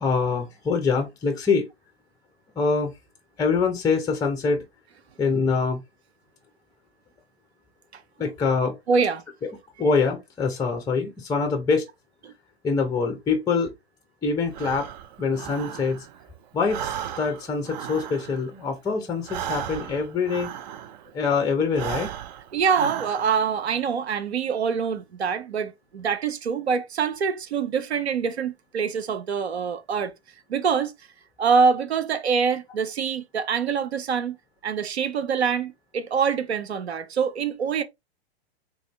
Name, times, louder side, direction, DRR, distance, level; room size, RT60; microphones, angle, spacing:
voice 1, 0.0-1.7 2.6-2.9 3.4-4.6 5.2-5.8 8.2-8.8 9.8-11.9 12.6-13.7 14.2-14.9 15.2-16.0 16.5-20.5 21.1-22.1, left 4 dB, 10° left, 0.6 m, -24 dB
voice 2, 8.9-9.2 22.5-30.1 30.5-30.9 31.4-34.4 34.6-37.8, right 6 dB, 85° right, 0.7 m, -25 dB
Breathing, 14.5-16.3 16.6-21.2 21.6-23.6, right 10 dB, 45° right, 0.5 m, -35 dB
3.4 x 2.6 x 3.2 m
hypercardioid pair, 115°, 32 cm